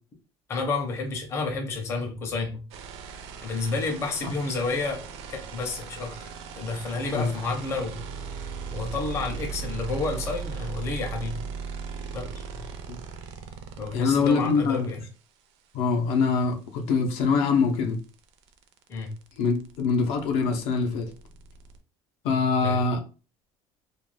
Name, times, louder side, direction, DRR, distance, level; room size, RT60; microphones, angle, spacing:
voice 1, 0.5-2.6 3.4-5.0 5.3-6.2 6.6-8.0 8.7-11.4 12.1-12.3 13.8-15.0 18.9-19.1 22.6-22.8, left 3 dB, 25° left, 1 dB, 0.6 m, -30 dB
sound 1, 2.7-15.0 17.1-17.2 17.4-21.8, right 6 dB, 65° right, 0.5 m, -38 dB
voice 2, 13.9-14.8 15.7-18.0 19.4-21.1 22.2-23.0, left 5 dB, 65° left, 4 dB, 0.5 m, -24 dB
2.4 x 2.2 x 3.2 m, 0.34 s
cardioid pair, 175°, 11 cm